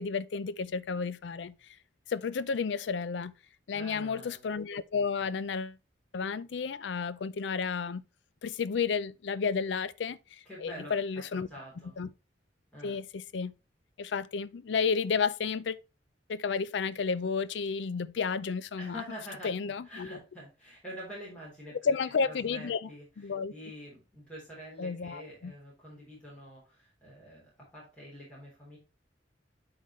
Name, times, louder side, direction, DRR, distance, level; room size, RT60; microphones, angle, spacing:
voice 1, 0.0-1.5 2.1-3.3 3.7-5.8 6.1-8.0 8.4-11.5 12.0-12.1 12.8-13.5 14.0-15.8 16.3-19.0 19.4-20.2 21.8-22.9 23.2-23.5 24.8-25.5, left 5 dB, 70° left, 0.4 m, -32 dB
voice 2, 3.7-4.5 10.4-12.0 12.7-13.0 18.8-19.5 19.8-21.9 22.3-23.0 23.5-28.8, equal, 5° left, 3.4 m, -46 dB
11.0 x 4.0 x 3.1 m
head